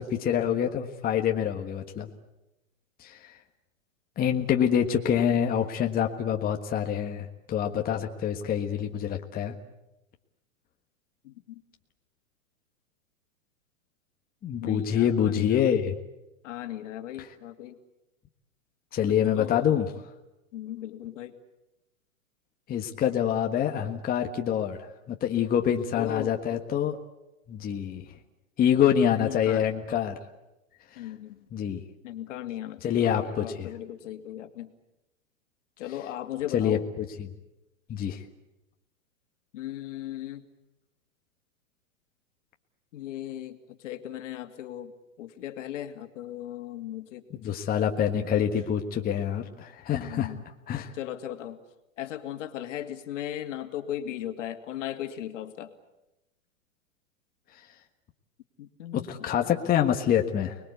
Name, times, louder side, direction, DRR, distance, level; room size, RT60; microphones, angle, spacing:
voice 1, 0.0-2.1 3.0-3.3 4.2-9.5 14.4-15.9 17.2-17.3 18.9-19.9 22.7-27.0 27.5-28.0 28.6-30.2 31.5-31.8 32.8-33.7 36.5-37.3 37.9-38.2 47.4-50.3 50.7-50.9 58.9-60.6, left 9 dB, 20° left, 4 dB, 1.5 m, -26 dB
voice 2, 11.2-11.6 14.6-15.8 16.4-17.8 19.1-19.7 20.5-21.3 25.9-26.6 29.1-29.6 31.0-31.4 32.0-34.7 35.8-36.9 39.5-40.5 42.9-44.9 45.2-47.4 49.9-50.4 50.9-51.6 52.0-55.7 58.6-59.1, left 12 dB, 60° left, 7 dB, 2.5 m, -37 dB
30.0 x 21.0 x 8.3 m, 0.96 s
hypercardioid pair, 125°, 40 cm